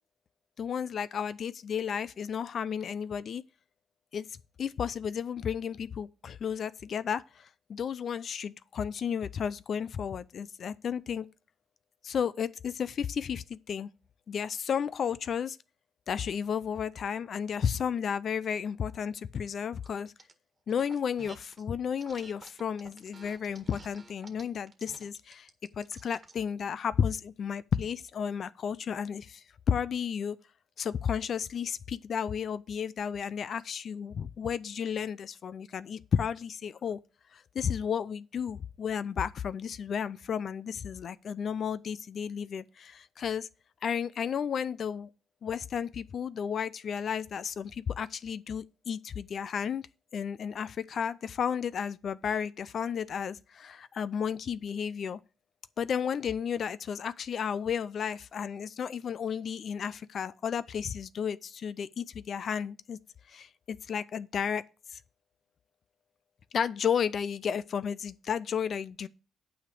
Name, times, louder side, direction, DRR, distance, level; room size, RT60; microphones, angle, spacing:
voice 1, 0.6-3.4 4.1-4.3 4.6-11.3 12.0-13.9 14.3-15.6 16.1-20.1 20.7-25.5 25.7-30.4 30.8-37.0 37.3-43.5 43.8-45.1 45.4-49.9 50.1-55.2 55.8-63.0 63.3-64.6 66.5-69.1, left 7 dB, 55° left, 0.5 m, -33 dB
sound 1, 19.8-20.3 20.7-21.6 22.0-26.4, right 3 dB, 30° right, 1.6 m, -52 dB
8.8 x 5.0 x 6.7 m
cardioid pair, 90°, 0 cm